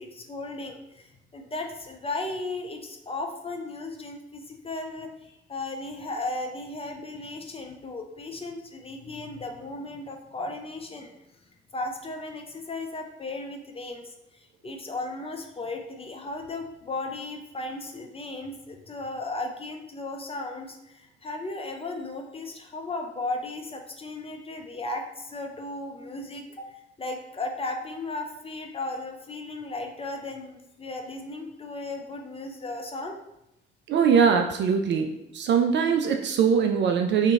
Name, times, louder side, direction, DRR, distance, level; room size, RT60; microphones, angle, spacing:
voice 1, 0.0-11.1 11.7-33.2, left 2 dB, 20° left, 3 dB, 0.5 m, -36 dB
voice 2, 33.9-35.1 35.3-37.3, right 6 dB, 40° right, 4 dB, 0.4 m, -21 dB
2.8 x 2.6 x 3.5 m, 0.87 s
figure-of-eight pair, 45°, 31 cm